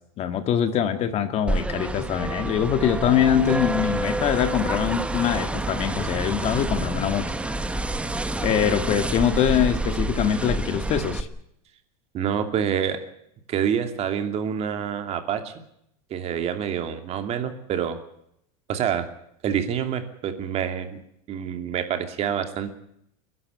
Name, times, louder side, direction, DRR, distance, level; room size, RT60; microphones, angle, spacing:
voice 1, 0.2-7.3 8.4-11.3, left 9 dB, 35° left, 10 dB, 1.8 m, -23 dB
sound 1, 1.5-11.2, right 2 dB, 5° right, 1.1 m, -28 dB
voice 2, 12.1-13.0 13.5-15.5 16.1-18.0 18.7-19.1 19.4-21.0 21.3-22.7, right 8 dB, 35° right, 7 dB, 2.7 m, -27 dB
29.5 x 11.5 x 9.5 m, 0.75 s
supercardioid pair, 140°, 19 cm